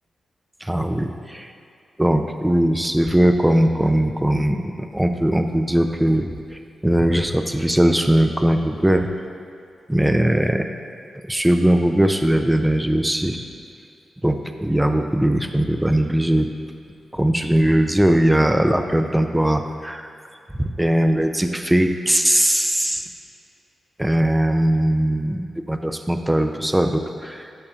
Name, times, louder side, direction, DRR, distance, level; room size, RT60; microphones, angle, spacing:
voice 1, 0.6-1.5 2.0-9.1 9.9-10.7 11.2-13.5 14.2-16.5 17.1-20.1 20.6-23.1 24.0-27.5, right 1 dB, 5° right, 6 dB, 0.4 m, -20 dB
12.0 x 6.9 x 2.4 m, 2.4 s
cardioid pair, 85°, 0 cm